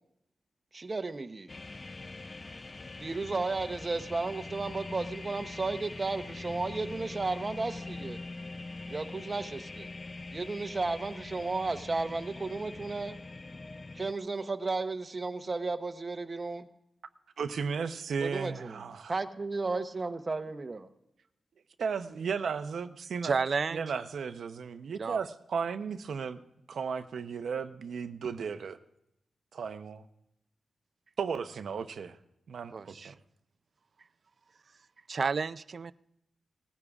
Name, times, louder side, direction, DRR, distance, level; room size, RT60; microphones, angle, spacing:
voice 1, 0.7-1.5 3.0-8.2 8.9-9.9 10.3-13.2 13.9-16.7 18.2-18.8 19.1-20.9, right 3 dB, 30° right, 0.8 m, -34 dB
sound 1, 1.5-14.1, left 3 dB, 30° left, 0.3 m, -43 dB
voice 2, 17.4-19.1 21.8-23.4 23.7-26.4 26.7-28.8 29.5-30.0 31.2-32.2 32.5-33.1, right 6 dB, 75° right, 0.7 m, -35 dB
voice 3, 23.2-23.9 25.0-25.2 32.7-33.1 35.1-35.9, right 5 dB, 45° right, 0.3 m, -31 dB
19.5 x 15.0 x 2.4 m
wide cardioid pair, 120°, 0 cm